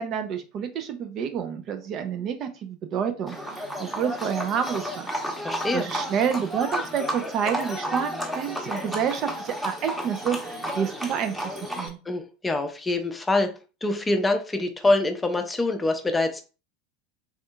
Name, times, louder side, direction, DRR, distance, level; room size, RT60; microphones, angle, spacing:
voice 1, 0.0-5.1 5.7-12.0, right 8 dB, 45° right, 7 dB, 0.4 m, -29 dB
Livestock farm animals working animals, 3.3-11.9, equal, 5° right, 0.9 m, -32 dB
voice 2, 5.4-5.8 12.1-13.5 13.8-16.4, left 2 dB, 15° left, 6 dB, 0.5 m, -25 dB
3.5 x 2.6 x 2.2 m, 0.33 s
figure-of-eight pair, 80°, 0 cm